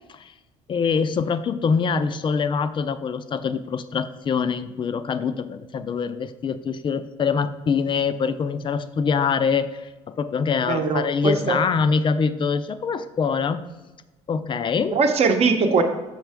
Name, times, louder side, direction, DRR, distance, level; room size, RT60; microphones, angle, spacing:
voice 1, 0.7-13.7 14.3-15.0, left 5 dB, 35° left, 12 dB, 0.4 m, -24 dB
voice 2, 10.7-11.6 14.9-15.8, right 4 dB, 50° right, 5 dB, 0.8 m, -20 dB
6.0 x 5.5 x 3.4 m, 1.1 s
cardioid pair, 95°, 14 cm